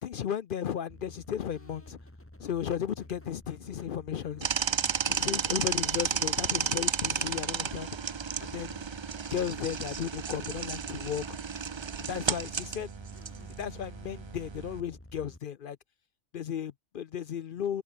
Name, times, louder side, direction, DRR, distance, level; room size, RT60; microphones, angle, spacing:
voice 1, 0.0-2.0 2.4-4.5 5.1-7.9 8.4-8.9 9.3-11.4 12.0-12.9 13.4-15.8 16.3-17.8, left 9 dB, 55° left, 0.6 m, -35 dB
sound 1, 0.9-15.4, left 1 dB, 10° left, 2.0 m, -51 dB
sound 2, 4.4-14.8, right 6 dB, 50° right, 0.3 m, -33 dB
omnidirectional pair, 1.2 m